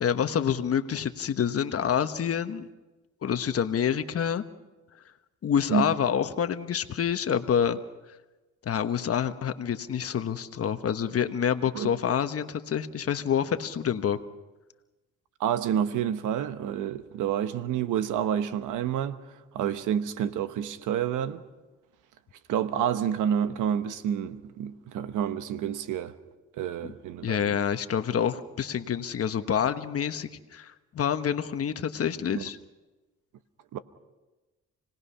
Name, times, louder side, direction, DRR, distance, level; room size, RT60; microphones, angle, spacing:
voice 1, 0.0-2.7 3.2-4.4 5.4-7.8 8.6-14.2 27.2-32.6, left 8 dB, 50° left, 1.2 m, -27 dB
voice 2, 15.4-21.4 22.5-26.2 26.5-27.6 32.3-32.5 33.7-33.8, right 9 dB, 85° right, 1.0 m, -29 dB
28.5 x 19.0 x 5.7 m
cardioid pair, 90°, 30 cm